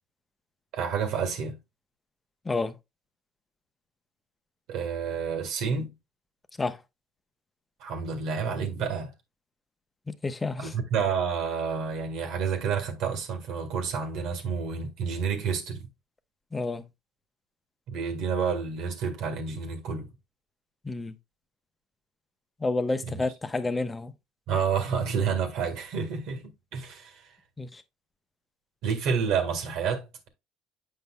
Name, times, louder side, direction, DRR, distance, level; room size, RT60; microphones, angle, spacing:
voice 1, 0.7-1.6 4.7-5.9 7.8-9.1 10.6-15.9 17.9-20.1 23.0-23.2 24.5-27.3 28.8-30.3, right 6 dB, 70° right, 1.7 m, -29 dB
voice 2, 10.1-10.7 16.5-16.8 20.8-21.1 22.6-24.1 27.6-27.8, left 3 dB, 20° left, 0.8 m, -30 dB
7.8 x 5.4 x 2.3 m
supercardioid pair, 95°, 0 cm